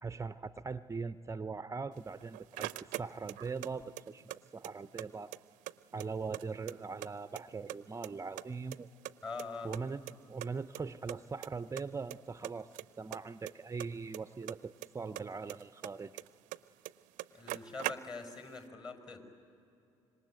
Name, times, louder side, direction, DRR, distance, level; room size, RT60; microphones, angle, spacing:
voice 1, 0.0-5.3 5.9-8.9 9.6-12.7 13.0-16.2, right 4 dB, 20° right, 13 dB, 0.6 m, -41 dB
sound 1, 2.0-3.7 4.0-5.1 5.3-5.4 5.7-7.1 7.3-8.1 8.4-9.8 10.1-10.2 10.4-10.5 10.7-10.8 11.1-11.5 11.8-12.2 12.4-14.9 15.1-16.6 16.8-16.9 17.2-18.4, right 18 dB, 65° right, 0.5 m, -41 dB
voice 2, 9.2-9.7 17.3-19.2, left 4 dB, 30° left, 6 dB, 5.6 m, -43 dB
26.5 x 23.5 x 9.2 m, 2.7 s
hypercardioid pair, 55°, 14 cm